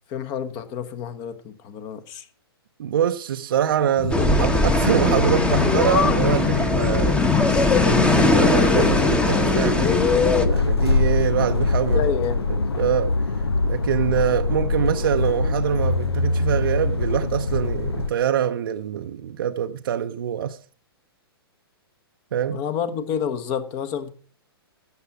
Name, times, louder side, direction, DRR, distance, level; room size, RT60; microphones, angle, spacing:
voice 1, 0.1-2.3 11.9-12.5 22.5-24.1, left 8 dB, 35° left, 1.3 m, -29 dB
voice 2, 2.8-7.2 7.8-10.1 10.5-12.1 12.8-13.2 13.6-20.6 22.3-22.6, right 9 dB, 60° right, 0.6 m, -24 dB
sound 1, 4.0-10.5, left 9 dB, 50° left, 0.9 m, -26 dB
sound 2, 4.1-10.5, left 2 dB, 10° left, 1.1 m, -20 dB
sound 3, 10.3-18.1, left 3 dB, 80° left, 0.8 m, -23 dB
12.5 x 8.3 x 5.9 m
figure-of-eight pair, 120°, 13 cm